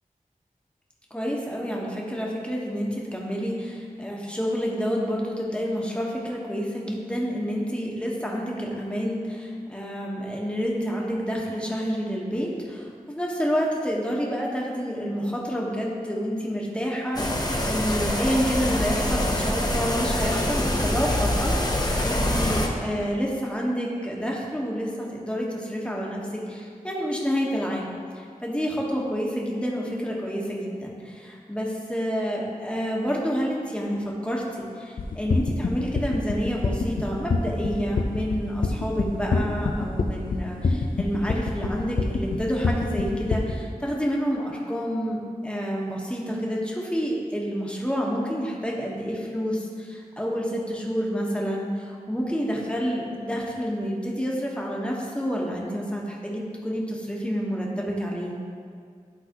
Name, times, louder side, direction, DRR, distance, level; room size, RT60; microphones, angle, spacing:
voice 1, 1.1-58.3, equal, 5° left, -3 dB, 1.3 m, -29 dB
sound 1, 17.2-22.7, left 1 dB, 25° left, 0.9 m, -25 dB
sound 2, 35.0-43.5, left 3 dB, 75° left, 0.5 m, -25 dB
11.5 x 3.9 x 3.0 m, 2.2 s
wide cardioid pair, 45°, 15 cm